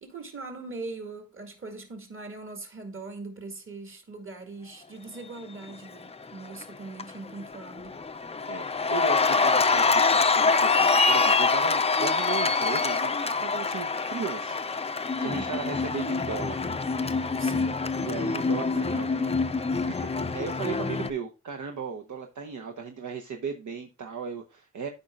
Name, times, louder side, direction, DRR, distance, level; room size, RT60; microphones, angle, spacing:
voice 1, 0.0-8.0 15.2-15.6 17.4-17.9, right 3 dB, 45° right, 2.2 m, -41 dB
Cheering, 6.2-6.6 7.0-21.1, left 4 dB, 20° left, 0.5 m, -25 dB
voice 2, 8.5-13.1 13.4-16.6 18.0-24.9, right 6 dB, 70° right, 0.9 m, -36 dB
13.0 x 5.3 x 2.3 m
wide cardioid pair, 120°, 30 cm